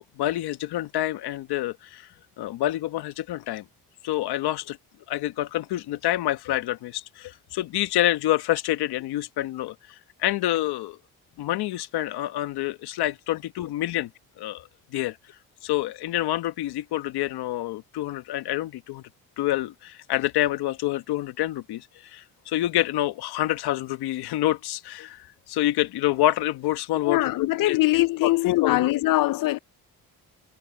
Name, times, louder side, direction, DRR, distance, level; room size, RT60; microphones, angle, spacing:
voice 1, 0.0-2.1 2.4-3.6 4.0-4.8 5.1-9.7 10.2-11.0 11.4-14.1 14.4-14.6 14.9-15.2 15.6-19.0 19.4-28.9, left 14 dB, 80° left, 1.4 m, -27 dB
voice 2, 27.0-29.6, left 17 dB, 60° left, 0.5 m, -22 dB
supercardioid pair, 70°, 38 cm